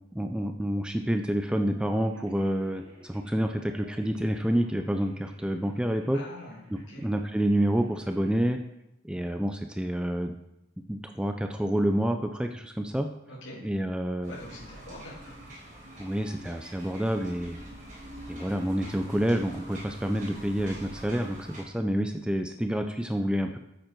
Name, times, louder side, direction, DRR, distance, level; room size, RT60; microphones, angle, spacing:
voice 1, 0.1-6.2 7.0-8.6 9.0-10.4 10.9-13.1 13.6-14.3 16.0-17.6 18.3-23.6, equal, 5° right, 6 dB, 0.4 m, -28 dB
sound 1, 2.0-8.4, equal, 85° right, 2.9 m, -56 dB
voice 2, 6.1-6.6 6.9-7.1 13.3-13.6 14.3-15.4, left 1 dB, 65° left, -3 dB, 2.9 m, -44 dB
sound 2, 14.2-21.6, right 1 dB, 40° right, 3.9 m, -44 dB
9.0 x 7.6 x 4.5 m, 0.87 s
head